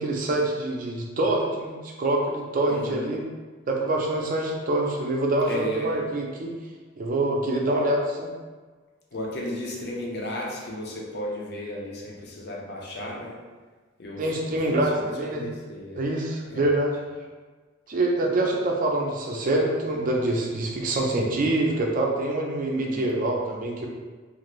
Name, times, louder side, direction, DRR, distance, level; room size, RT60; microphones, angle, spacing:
voice 1, 0.0-3.2 3.7-6.6 7.0-8.3 14.2-15.5 16.0-17.0 17.9-23.9, right 1 dB, 40° right, 0 dB, 0.4 m, -25 dB
voice 2, 2.7-3.1 5.4-6.0 9.1-13.3 14.0-14.6 14.9-16.0 16.5-16.7 22.7-23.0, left 1 dB, 55° left, -2 dB, 0.6 m, -34 dB
2.5 x 2.5 x 3.0 m, 1.4 s
head